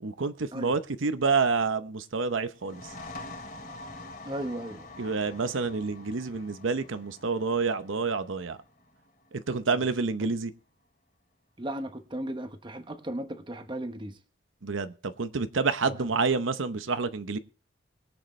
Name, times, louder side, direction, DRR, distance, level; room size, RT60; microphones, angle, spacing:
voice 1, 0.0-2.8 5.0-8.6 9.3-10.5 14.6-17.4, right 4 dB, 90° right, 11 dB, 0.8 m, -28 dB
sound 1, 2.6-10.0, left 2 dB, 45° left, 2.9 m, -46 dB
voice 2, 4.2-5.0 9.7-9.8 10.2-10.3 11.6-14.2 16.0-16.1, right 1 dB, 25° right, 8 dB, 1.1 m, -36 dB
22.5 x 7.9 x 3.2 m, 0.39 s
head